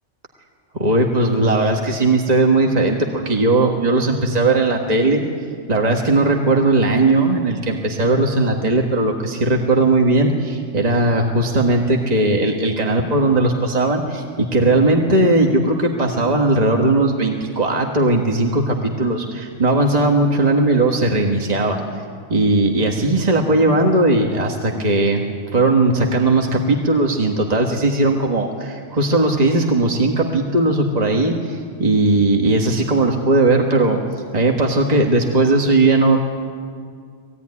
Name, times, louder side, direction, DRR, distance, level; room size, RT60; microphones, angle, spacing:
voice 1, 0.7-5.2 5.7-21.8 22.3-25.2 25.5-34.0 34.3-36.2, right 2 dB, 35° right, 1 dB, 1.7 m, -18 dB
21.5 x 16.0 x 9.7 m, 2.1 s
omnidirectional pair, 1.3 m